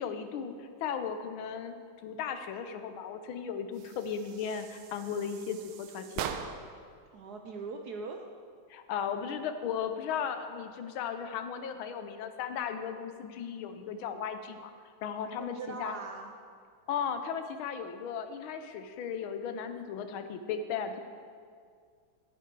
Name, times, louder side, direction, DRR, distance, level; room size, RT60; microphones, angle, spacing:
voice 1, 0.0-1.8 2.0-6.2 8.7-14.7 15.0-15.9 16.9-21.0, left 7 dB, 80° left, 8 dB, 1.5 m, -36 dB
sound 1, 3.7-6.8, right 8 dB, 85° right, 1.5 m, -41 dB
voice 2, 7.1-8.3 15.4-16.3, right 4 dB, 70° right, 4 dB, 1.0 m, -41 dB
11.0 x 10.0 x 4.6 m, 2.1 s
omnidirectional pair, 2.3 m